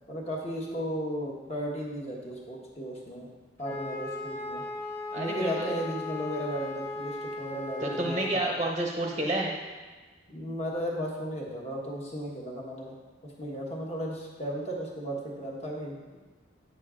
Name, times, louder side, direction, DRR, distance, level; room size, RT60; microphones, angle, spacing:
voice 1, 0.1-3.3 3.6-4.6 5.1-8.4 10.3-12.9 13.2-16.2, equal, 30° left, -2 dB, 1.4 m, -35 dB
Wind instrument woodwind instrument, 3.6-8.4, left 2 dB, 10° left, 1.1 m, -37 dB
voice 2, 5.1-5.7 7.8-9.5, right 1 dB, 20° right, 0 dB, 0.8 m, -29 dB
9.1 x 6.5 x 3.7 m, 1.3 s
head